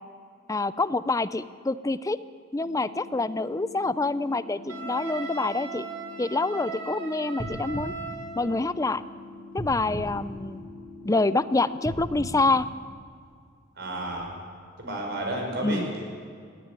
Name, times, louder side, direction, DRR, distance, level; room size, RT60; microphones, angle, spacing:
voice 1, 0.5-2.2 2.5-5.9 6.2-7.9 8.4-9.0 9.5-10.6 11.0-12.7 15.6-15.8, left 3 dB, 15° left, 15 dB, 0.5 m, -26 dB
sound 1, 2.6-12.6, left 3 dB, 5° right, 7.9 m, -45 dB
Wind instrument woodwind instrument, 4.7-8.6, right 4 dB, 80° right, 3.2 m, -38 dB
sound 2, 7.3-9.0 9.5-11.1 11.7-13.4 14.0-14.1, equal, 20° right, 5.9 m, -38 dB
voice 2, 13.7-14.3 14.8-16.0, right 1 dB, 55° right, 1 dB, 5.1 m, -31 dB
21.0 x 14.0 x 9.1 m, 2.2 s
head